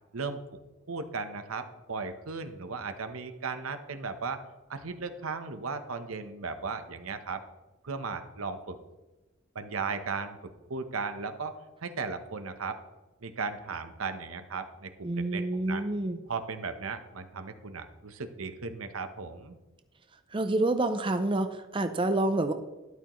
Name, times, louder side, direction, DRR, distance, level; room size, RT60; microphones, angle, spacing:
voice 1, 0.9-4.4 4.7-7.4 7.8-8.8 9.5-12.8 13.2-15.9 16.3-19.6, right 4 dB, 80° right, 9 dB, 0.9 m, -36 dB
voice 2, 15.0-16.2 20.3-22.5, right 2 dB, 25° right, 8 dB, 0.5 m, -28 dB
12.5 x 11.5 x 3.1 m, 1.1 s
head